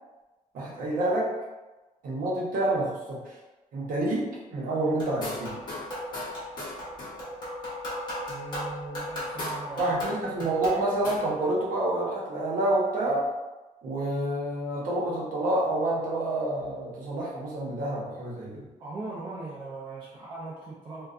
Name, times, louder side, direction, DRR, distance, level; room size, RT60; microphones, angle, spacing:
voice 1, 0.5-1.4 2.0-3.4 3.7-5.6 9.8-13.3 13.8-18.6, right 1 dB, 65° right, -4 dB, 0.7 m, -28 dB
sound 1, 5.0-11.4, left 1 dB, 30° left, 0.8 m, -36 dB
voice 2, 8.3-9.9 18.8-21.1, right 3 dB, 30° right, -5 dB, 0.4 m, -39 dB
2.5 x 2.2 x 2.4 m, 1.1 s
wide cardioid pair, 175°, 15 cm